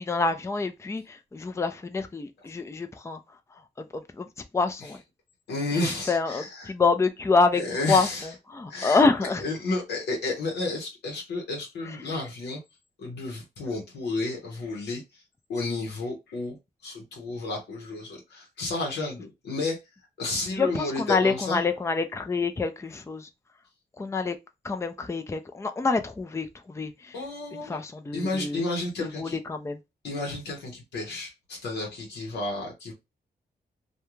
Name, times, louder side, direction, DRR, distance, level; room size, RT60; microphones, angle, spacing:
voice 1, 0.0-3.2 3.8-4.3 4.5-5.0 6.1-7.6 7.9-9.4 20.5-23.3 24.0-24.4 24.6-27.1 27.5-28.6 29.0-29.8, left 4 dB, 15° left, 0.4 m, -27 dB
voice 2, 5.5-6.7 7.5-8.3 8.7-12.6 13.0-15.2 15.5-16.6 16.8-19.8 20.2-21.7 27.1-27.8 28.1-29.4 30.0-32.9, left 2 dB, 90° left, 0.8 m, -32 dB
2.3 x 2.2 x 3.0 m
cardioid pair, 60°, 17 cm